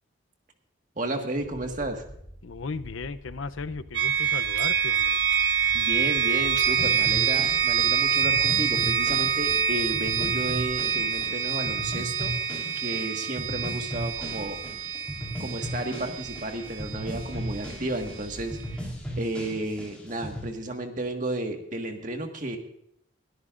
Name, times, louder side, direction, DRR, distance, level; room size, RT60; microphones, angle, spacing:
voice 1, 0.9-2.0 5.7-12.3 12.7-14.6 15.4-22.6, right 2 dB, 40° right, 4 dB, 1.7 m, -33 dB
sound 1, 1.3-11.9 12.2-12.3 13.5-19.1, equal, 85° right, 6.5 m, -47 dB
voice 2, 2.4-5.2, left 4 dB, 85° left, 14 dB, 0.7 m, -36 dB
sound 2, 3.9-17.8, right 7 dB, 60° right, 1.1 m, -26 dB
sound 3, 6.8-20.5, equal, 5° left, 3.8 m, -37 dB
22.0 x 13.5 x 2.5 m, 0.71 s
head